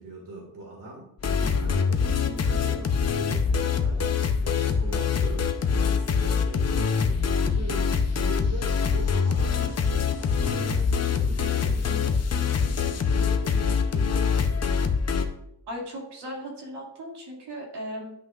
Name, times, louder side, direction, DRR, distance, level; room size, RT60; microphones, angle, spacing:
voice 1, 0.0-14.6, right 2 dB, 50° right, -1 dB, 1.9 m, -42 dB
sound 1, 1.2-15.2, left 6 dB, 35° left, 0.7 m, -24 dB
voice 2, 15.7-18.1, equal, 70° right, -2 dB, 2.4 m, -37 dB
10.5 x 5.7 x 2.4 m, 0.77 s
cardioid pair, 120°, 43 cm